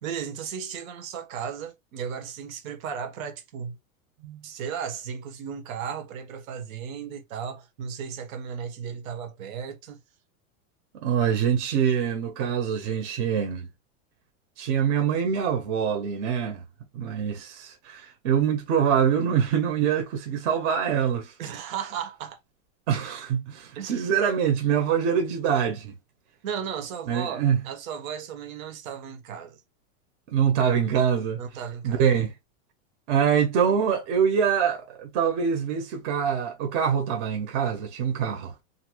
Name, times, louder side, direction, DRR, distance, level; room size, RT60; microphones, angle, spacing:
voice 1, 0.0-3.8 4.4-10.0 21.4-22.4 23.7-23.9 26.4-29.6 31.4-32.0, right 7 dB, 80° right, 1.1 m, -35 dB
voice 2, 11.0-13.7 14.6-16.6 16.9-21.3 22.9-25.9 27.1-27.6 30.3-31.4 31.8-32.3 33.1-38.5, right 8 dB, 55° right, 1.0 m, -24 dB
2.8 x 2.6 x 2.9 m
supercardioid pair, 145°, 41 cm